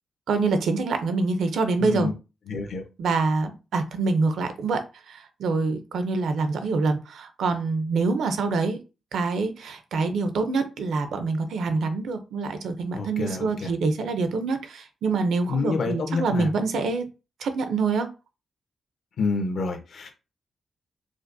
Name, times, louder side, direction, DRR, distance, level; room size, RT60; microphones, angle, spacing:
voice 1, 0.3-2.1 3.0-4.8 5.1-8.8 9.1-17.0 17.4-18.1, right 3 dB, 85° right, 8 dB, 0.6 m, -25 dB
voice 2, 1.8-2.1 2.5-2.8 12.9-13.7 15.5-16.5 19.2-20.1, left 4 dB, 65° left, 3 dB, 1.0 m, -28 dB
4.9 x 2.1 x 2.7 m, 0.30 s
wide cardioid pair, 125°, 0 cm